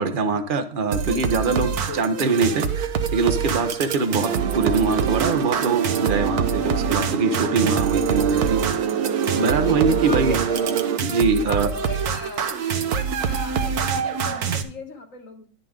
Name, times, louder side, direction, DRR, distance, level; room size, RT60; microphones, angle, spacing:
voice 1, 0.0-8.6 9.4-10.4 11.0-11.7, right 4 dB, 40° right, 8 dB, 0.8 m, -23 dB
sound 1, 0.9-14.6, right 7 dB, 60° right, 1.3 m, -26 dB
voice 2, 1.0-2.1 9.4-10.8 11.4-15.5, left 4 dB, 45° left, 5 dB, 1.7 m, -38 dB
sound 2, 4.1-11.0, right 8 dB, 90° right, 1.7 m, -26 dB
11.0 x 9.7 x 3.7 m, 0.42 s
omnidirectional pair, 2.1 m